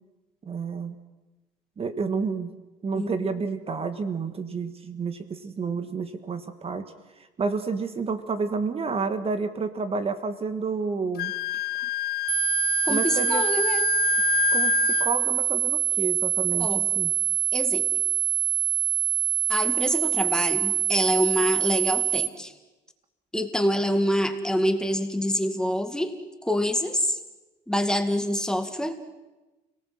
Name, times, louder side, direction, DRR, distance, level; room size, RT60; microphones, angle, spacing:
voice 1, 0.4-1.0 1.8-2.5 2.8-6.8 7.4-11.3 12.9-13.4 14.5-17.1, right 4 dB, 35° right, 10 dB, 1.6 m, -30 dB
voice 2, 2.9-3.3 12.9-13.9 16.6-16.9 17.5-17.9 19.5-22.5 23.3-26.1 26.4-27.2 27.7-29.0, equal, 5° left, 7 dB, 2.1 m, -26 dB
Wind instrument woodwind instrument, 11.1-15.1, left 14 dB, 65° left, 1.3 m, -27 dB
sound 1, 12.3-22.3, right 11 dB, 65° right, 0.9 m, -25 dB
30.0 x 18.5 x 7.7 m, 1.1 s
cardioid pair, 110°, 17 cm